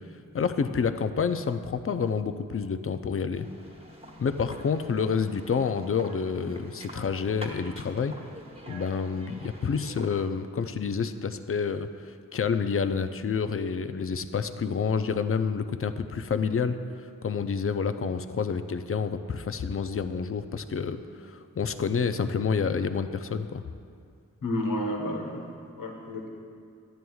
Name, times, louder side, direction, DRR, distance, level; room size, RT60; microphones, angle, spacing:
voice 1, 0.3-3.5 4.2-8.2 8.7-16.8 17.2-23.6, left 6 dB, 40° left, 10 dB, 0.5 m, -28 dB
sound 1, 3.3-10.5, right 1 dB, 15° right, 1.2 m, -46 dB
voice 2, 24.4-26.3, left 1 dB, 70° left, 0 dB, 1.3 m, -31 dB
11.0 x 9.1 x 2.3 m, 2.4 s
cardioid pair, 45°, 34 cm